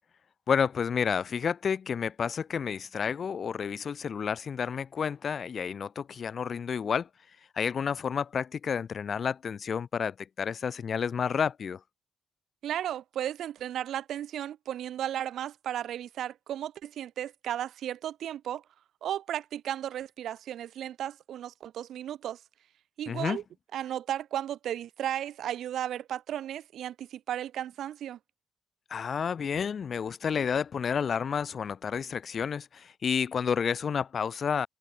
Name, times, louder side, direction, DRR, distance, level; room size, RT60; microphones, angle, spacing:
voice 1, 0.5-7.1 7.6-11.8 23.1-23.4 28.9-34.7, left 7 dB, 55° left, 0.4 m, -30 dB
voice 2, 12.6-18.6 19.0-22.4 23.0-23.4 23.7-28.2, right 11 dB, 80° right, 0.7 m, -34 dB
cardioid pair, 75°, 0 cm